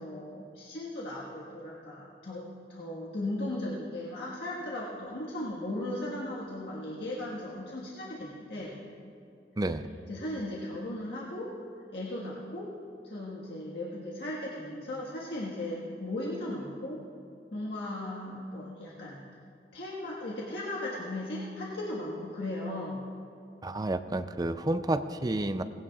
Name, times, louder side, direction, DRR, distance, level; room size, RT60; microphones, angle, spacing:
voice 1, 0.0-8.7 10.1-11.5 11.9-12.7 13.0-17.0 17.5-19.2 19.7-23.0, left 1 dB, 75° left, -5 dB, 1.6 m, -37 dB
voice 2, 9.6-9.9 23.6-25.6, right 2 dB, 20° right, 10 dB, 0.4 m, -30 dB
19.0 x 16.5 x 2.4 m, 2.5 s
head